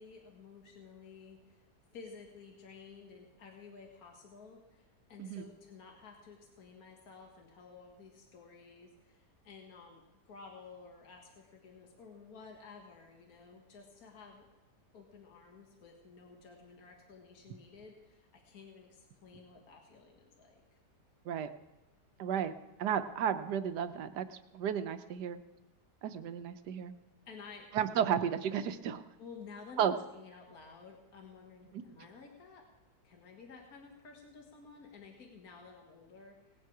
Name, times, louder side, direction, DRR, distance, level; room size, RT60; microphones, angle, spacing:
voice 1, 0.0-1.7 1.9-14.5 14.9-20.6 27.3-27.9 29.2-32.6 33.0-36.6, left 5 dB, 60° left, 1 dB, 2.0 m, -53 dB
voice 2, 22.2-22.5 22.8-24.3 24.5-25.4 26.0-26.9 27.7-29.0 29.8-29.9 31.7-31.8, right 8 dB, 75° right, 10 dB, 1.3 m, -33 dB
18.5 x 9.3 x 4.8 m, 1.1 s
omnidirectional pair, 1.8 m